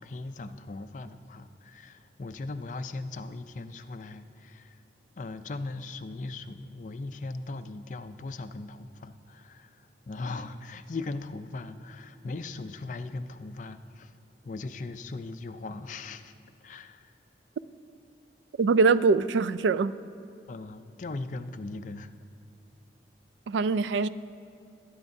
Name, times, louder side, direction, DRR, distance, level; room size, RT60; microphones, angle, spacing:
voice 1, 0.0-4.8 5.2-14.1 14.4-16.3 16.6-17.1 20.5-22.1, left 3 dB, 45° left, 9 dB, 0.4 m, -39 dB
voice 2, 18.6-19.9 23.5-24.1, right 4 dB, 85° right, 16 dB, 0.3 m, -23 dB
19.5 x 9.4 x 2.7 m, 2.7 s
head